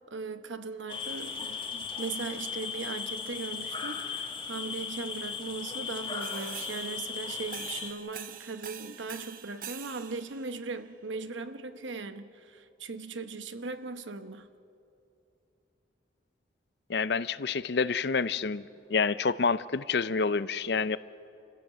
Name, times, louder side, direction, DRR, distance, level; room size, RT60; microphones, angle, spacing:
voice 1, 0.0-14.5, right 4 dB, 85° right, 10 dB, 1.0 m, -39 dB
sound 1, 0.9-7.9, left 6 dB, 25° left, 1.6 m, -37 dB
sound 2, 6.0-10.8, right 8 dB, 45° right, 0.9 m, -45 dB
voice 2, 16.9-18.6 18.9-21.0, left 5 dB, 60° left, 16 dB, 0.5 m, -28 dB
29.0 x 15.5 x 7.5 m, 2.8 s
head